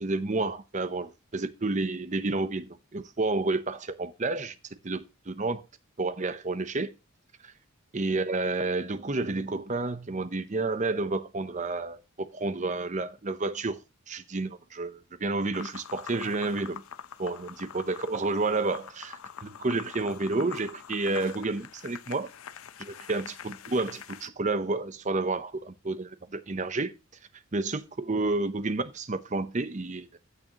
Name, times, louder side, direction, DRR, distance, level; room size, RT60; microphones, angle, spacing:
voice 1, 0.0-4.6 4.8-5.6 6.0-6.9 7.4-7.5 7.9-13.8 14.1-16.8 17.2-22.3 22.8-26.9 27.5-30.2, right 3 dB, 35° right, 0.7 m, -30 dB
sound 1, 15.5-24.3, left 8 dB, 80° left, 0.6 m, -44 dB
15.0 x 6.4 x 2.9 m
head